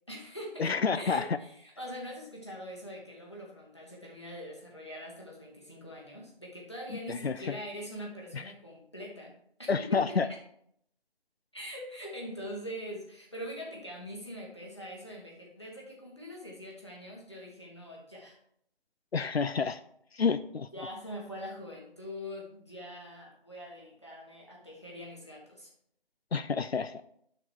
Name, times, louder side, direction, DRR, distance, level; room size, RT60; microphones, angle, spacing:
voice 1, 0.1-9.3 9.6-10.2 11.5-18.4 20.7-25.7, equal, 30° left, -2 dB, 1.6 m, -43 dB
voice 2, 0.6-1.4 7.1-7.6 8.3-8.4 9.7-10.3 19.1-19.8 20.1-20.7 26.3-27.0, left 5 dB, 90° left, 12 dB, 0.5 m, -29 dB
7.4 x 6.1 x 4.7 m, 0.69 s
figure-of-eight pair, 175°, 30 cm